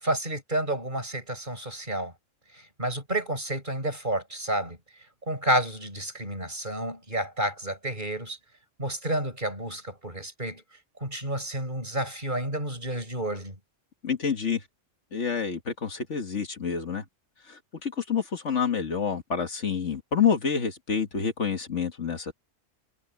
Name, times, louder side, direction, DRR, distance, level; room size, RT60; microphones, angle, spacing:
voice 1, 0.0-2.1 2.5-4.8 5.3-8.4 8.8-10.6 11.0-13.6, right 1 dB, 40° right, 7.0 m, -30 dB
voice 2, 14.0-14.6 15.1-17.0 17.4-22.3, left 6 dB, 65° left, 2.0 m, -28 dB
omnidirectional pair, 1.3 m